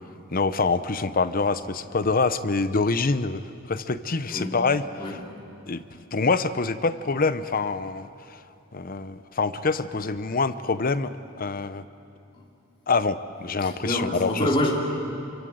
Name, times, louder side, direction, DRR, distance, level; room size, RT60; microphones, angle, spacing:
voice 1, 0.3-5.2 5.7-5.8 6.1-8.1 8.7-11.1 11.4-11.8 12.9-14.5, left 4 dB, 45° left, 12 dB, 0.8 m, -25 dB
voice 2, 4.3-4.6 5.0-5.3 12.3-12.4 13.6-14.7, left 1 dB, 25° left, -3 dB, 3.4 m, -27 dB
28.0 x 24.0 x 7.9 m, 2.7 s
head